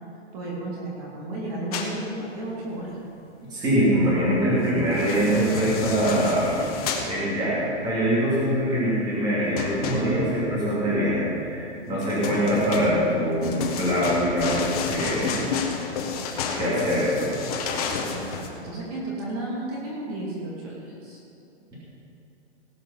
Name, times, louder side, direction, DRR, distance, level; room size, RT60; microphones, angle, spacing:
voice 1, 0.3-3.0 11.9-12.4 18.1-21.2, right 2 dB, 30° right, -4 dB, 2.6 m, -33 dB
sound 1, 1.7-1.9 4.7-7.1 9.6-10.4 12.0-18.5, left 5 dB, 35° left, 1.4 m, -31 dB
voice 2, 3.5-15.3 16.5-17.4, equal, 10° right, -8 dB, 2.7 m, -23 dB
18.0 x 8.7 x 5.6 m, 2.8 s
hypercardioid pair, 175°, 34 cm